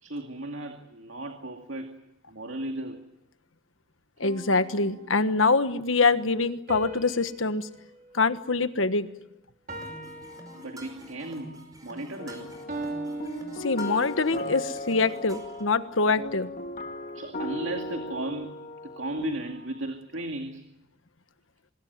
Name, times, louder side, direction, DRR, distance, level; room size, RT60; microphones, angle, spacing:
voice 1, 0.0-2.0 2.3-3.0 10.6-12.6 17.1-18.5 18.8-20.6, right 1 dB, 70° right, 4 dB, 2.2 m, -35 dB
voice 2, 4.2-7.7 8.1-9.1 13.6-16.5, left 3 dB, 90° left, 11 dB, 1.4 m, -24 dB
sound 1, 4.2-5.7 6.7-9.2 9.7-11.3 12.7-14.4, right 2 dB, 45° right, 4.3 m, -41 dB
sound 2, 9.7-15.6, right 1 dB, 20° right, 5.1 m, -47 dB
sound 3, 12.2-19.4, left 1 dB, 45° left, 1.6 m, -37 dB
25.0 x 21.5 x 9.5 m, 0.85 s
head